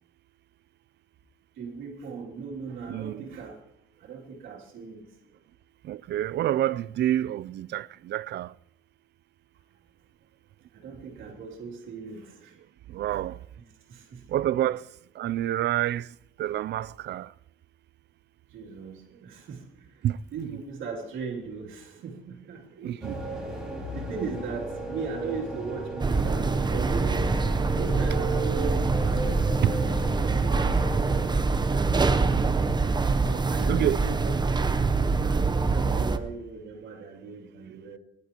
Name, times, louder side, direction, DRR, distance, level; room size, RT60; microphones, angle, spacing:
voice 1, 1.5-3.6 4.0-5.1 10.7-12.6 13.9-14.3 18.5-20.1 20.3-23.4 23.9-27.2 27.7-32.3 33.2-34.6 35.2-38.0, right 5 dB, 85° right, 2.8 m, -39 dB
voice 2, 2.9-3.4 5.8-8.5 12.9-13.4 14.3-14.8 15.2-16.1 16.4-17.3 20.0-20.5 22.8-23.2 29.6-29.8 33.7-34.0, right 12 dB, 60° right, 0.4 m, -28 dB
sound 1, 23.0-31.3, right 2 dB, 5° right, 4.8 m, -35 dB
sound 2, 26.0-36.2, right 4 dB, 20° right, 0.8 m, -25 dB
23.0 x 11.5 x 3.0 m
cardioid pair, 90°, 20 cm